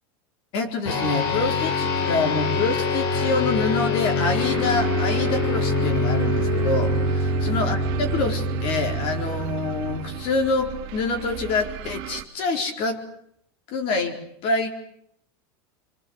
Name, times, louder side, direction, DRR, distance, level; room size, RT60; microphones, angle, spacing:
voice 1, 0.5-7.2 7.4-13.0 13.7-14.7, left 3 dB, 45° left, 4 dB, 4.5 m, -26 dB
sound 1, 0.9-10.6, left 2 dB, 90° left, 7.7 m, -25 dB
sound 2, 4.4-12.2, right 14 dB, 50° right, 2.3 m, -35 dB
25.0 x 24.5 x 8.1 m, 0.71 s
supercardioid pair, 155°, 12 cm